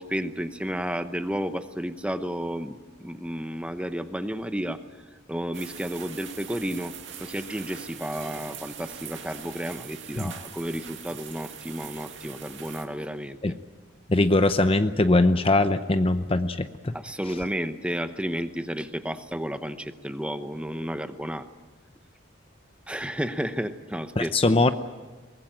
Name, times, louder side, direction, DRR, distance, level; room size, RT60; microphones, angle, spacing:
voice 1, 0.0-4.8 5.3-6.9 7.2-13.4 16.9-21.5 22.9-24.6, equal, 5° right, 9 dB, 0.9 m, -32 dB
sound 1, 5.5-12.9, right 8 dB, 65° right, 2.4 m, -42 dB
voice 2, 14.1-16.9 24.2-24.7, left 2 dB, 30° left, 10 dB, 0.7 m, -21 dB
23.0 x 19.5 x 9.1 m, 1.3 s
head